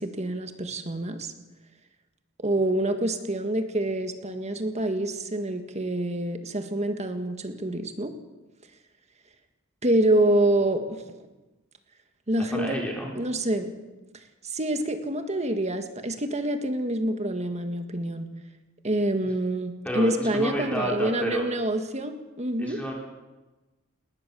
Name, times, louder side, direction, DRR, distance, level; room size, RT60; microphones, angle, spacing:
voice 1, 0.0-1.3 2.4-8.1 9.8-10.8 12.3-12.8 13.2-13.7 14.4-18.3 18.8-22.8, right 1 dB, 35° right, 7 dB, 1.8 m, -26 dB
voice 2, 12.5-13.1 19.8-21.5 22.6-22.9, equal, 5° left, -1 dB, 4.1 m, -30 dB
20.0 x 18.5 x 7.0 m, 1.1 s
head